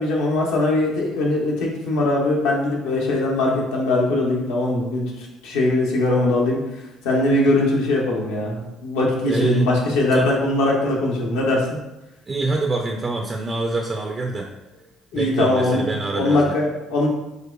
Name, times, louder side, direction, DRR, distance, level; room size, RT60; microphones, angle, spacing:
voice 1, 0.0-11.8 15.1-15.8 16.1-17.1, left 2 dB, 85° left, -2 dB, 0.8 m, -21 dB
voice 2, 9.3-9.7 10.1-10.3 12.3-14.5 15.1-16.6, right 3 dB, 35° right, 1 dB, 0.3 m, -25 dB
4.8 x 2.1 x 2.2 m, 0.99 s
supercardioid pair, 85°, 0 cm